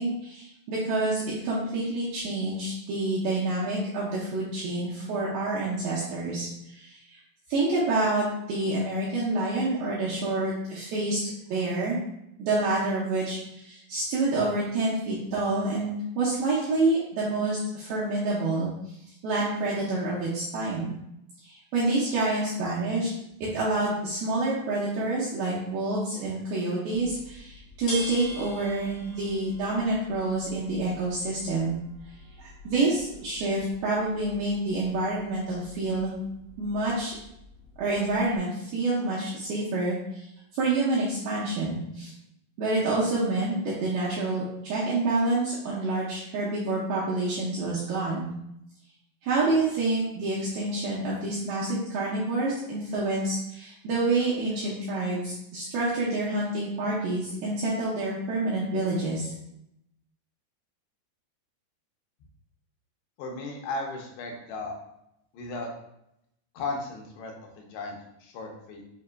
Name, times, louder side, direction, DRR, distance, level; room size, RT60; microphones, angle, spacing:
voice 1, 0.0-7.2 7.5-11.2 11.5-12.0 12.4-18.7 19.2-21.0 21.4-23.1 23.4-31.8 32.4-36.2 36.6-37.1 37.8-40.3 40.5-42.1 42.6-48.3 49.2-59.3, right 2 dB, 80° right, -7 dB, 2.1 m, -28 dB
sound 1, 26.9-38.4, equal, 65° left, 1.3 m, -45 dB
voice 2, 63.2-64.8 65.3-65.7 66.5-68.8, left 3 dB, 80° left, 1 dB, 2.6 m, -36 dB
6.7 x 2.9 x 2.2 m, 0.80 s
omnidirectional pair, 5.1 m